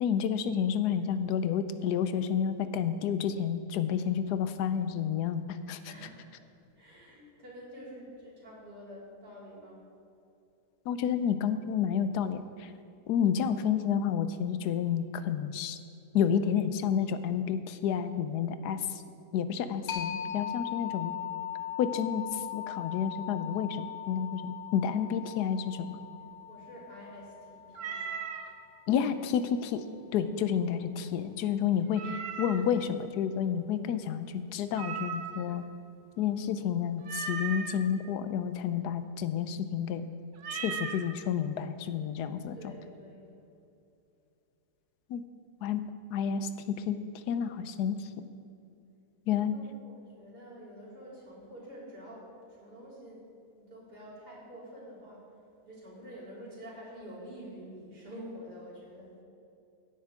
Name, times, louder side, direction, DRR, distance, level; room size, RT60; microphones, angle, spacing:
voice 1, 0.0-5.9 10.9-12.7 13.1-15.8 16.1-19.0 19.3-21.1 21.8-26.0 28.9-29.8 30.1-35.6 36.2-40.1 40.5-42.7 45.1-45.2 45.6-45.8 46.1-47.0 47.3-48.1 49.3-49.6, left 8 dB, 85° left, 11 dB, 1.2 m, -30 dB
voice 2, 5.9-6.4 6.7-9.8 26.5-28.0 42.5-43.2 49.5-53.3 53.6-55.2 55.6-59.1, equal, 85° right, -6 dB, 3.9 m, -47 dB
sound 1, 19.9-29.3, left 10 dB, 65° left, 1.3 m, -40 dB
Meow, 27.7-28.5 31.9-32.7 34.7-35.5 37.0-37.8 40.4-41.0, right 6 dB, 60° right, 1.2 m, -37 dB
16.0 x 8.8 x 3.7 m, 2.7 s
omnidirectional pair, 1.7 m